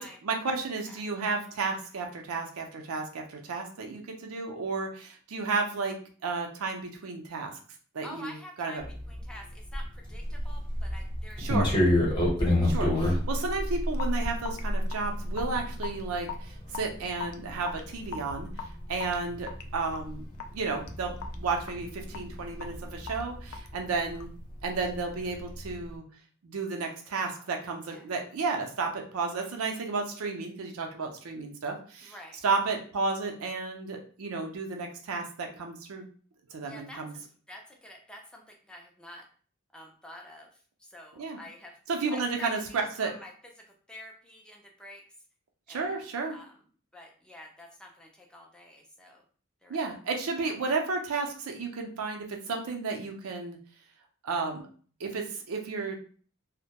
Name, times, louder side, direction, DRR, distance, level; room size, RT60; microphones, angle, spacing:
voice 1, 0.2-6.0 6.2-7.5 7.9-8.8 11.4-11.7 12.6-18.5 18.9-20.2 20.5-24.3 24.6-26.0 26.4-32.1 32.4-36.0 36.5-37.1 41.2-41.4 41.9-43.1 45.7-46.4 49.7-53.6 54.2-54.6 55.0-56.0, right 4 dB, 80° right, 3 dB, 0.5 m, -32 dB
voice 2, 8.0-11.7 12.1-12.3 24.0-24.2 26.8-27.5 27.9-28.1 32.0-32.4 36.6-39.3 39.7-41.8 42.1-43.3 43.6-45.0 45.7-46.5 46.9-49.2 49.6-49.8 50.4-50.6, left 1 dB, 5° left, 0 dB, 0.4 m, -48 dB
sound 1, 8.8-24.3 24.6-25.9, left 1 dB, 20° left, 0.8 m, -30 dB
Raindrop / Drip, 13.9-24.4, left 6 dB, 80° left, 0.3 m, -43 dB
2.2 x 2.0 x 2.8 m, 0.44 s
head